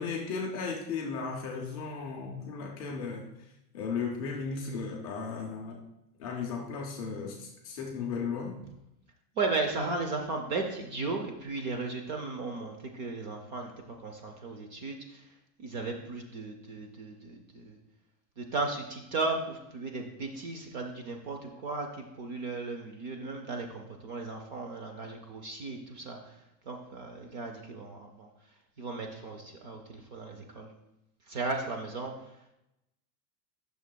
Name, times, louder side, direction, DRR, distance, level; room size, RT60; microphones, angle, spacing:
voice 1, 0.0-3.3 3.7-5.8 6.2-8.6, left 5 dB, 25° left, 0 dB, 0.5 m, -35 dB
voice 2, 9.4-15.3 15.6-17.8 18.4-26.3 26.7-28.3 28.8-30.7 31.3-32.1, right 3 dB, 30° right, 3 dB, 0.5 m, -36 dB
11.0 x 6.3 x 2.2 m, 0.88 s
supercardioid pair, 160°, 49 cm